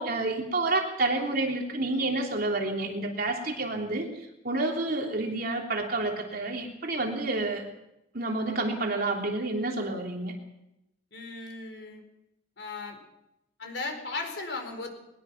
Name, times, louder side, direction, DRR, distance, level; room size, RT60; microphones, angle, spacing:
voice 1, 0.0-7.7 8.1-10.3, right 2 dB, 55° right, 1 dB, 3.4 m, -29 dB
voice 2, 11.1-12.0 12.6-13.0 13.6-14.9, left 3 dB, 70° left, 5 dB, 4.7 m, -36 dB
21.5 x 20.5 x 6.0 m, 0.85 s
head